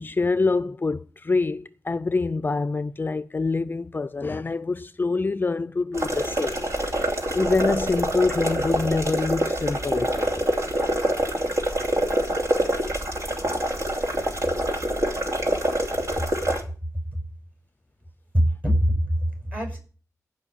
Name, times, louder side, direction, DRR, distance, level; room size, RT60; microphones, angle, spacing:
voice 1, 0.0-10.3, left 3 dB, 35° left, 0.5 m, -26 dB
sound 1, 5.9-16.6, right 1 dB, 60° right, 2.8 m, -25 dB
voice 2, 18.3-19.8, equal, 30° right, 6.9 m, -23 dB
15.5 x 5.5 x 8.5 m
cardioid pair, 75°, 6 cm